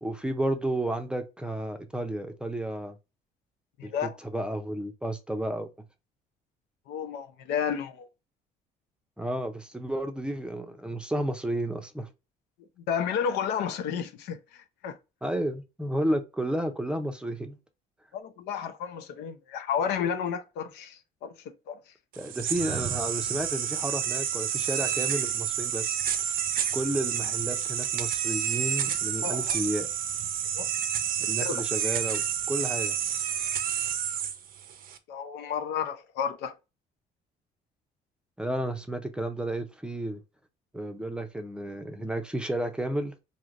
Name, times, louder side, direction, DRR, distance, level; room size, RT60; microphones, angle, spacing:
voice 1, 0.0-3.0 3.8-5.7 9.2-12.1 15.2-17.6 22.2-26.0 26.7-29.9 31.3-33.0 38.4-40.2 40.7-43.1, right 1 dB, 5° right, 0.5 m, -32 dB
voice 2, 3.8-4.2 6.9-8.1 12.9-15.0 18.1-21.3 21.7-21.8 29.2-29.5 30.6-30.7 31.3-31.6 35.1-36.5, left 7 dB, 85° left, 0.6 m, -32 dB
sound 1, 22.1-35.0, right 9 dB, 60° right, 0.5 m, -29 dB
3.2 x 2.6 x 2.5 m
cardioid pair, 110°, 17 cm